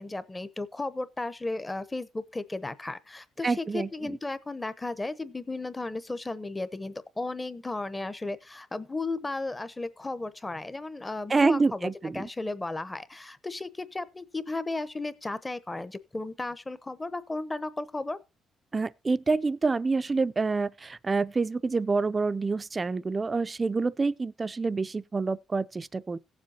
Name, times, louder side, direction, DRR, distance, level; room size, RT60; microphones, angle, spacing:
voice 1, 0.0-18.2, left 2 dB, 15° left, 0.9 m, -34 dB
voice 2, 3.4-4.2 11.3-12.2 18.7-26.2, right 4 dB, 30° right, 0.5 m, -27 dB
17.5 x 7.5 x 2.8 m
cardioid pair, 90°, 0 cm